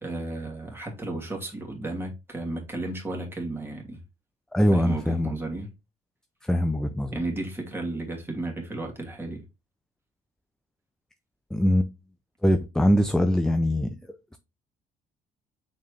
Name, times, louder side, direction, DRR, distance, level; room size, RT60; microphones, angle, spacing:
voice 1, 0.0-4.0 4.7-5.7 7.1-9.4, right 2 dB, 15° right, 2.6 m, -33 dB
voice 2, 4.5-5.3 6.5-7.1 11.5-11.9 12.4-13.9, equal, 5° left, 0.5 m, -22 dB
6.6 x 4.5 x 3.3 m
cardioid pair, 110°, 17 cm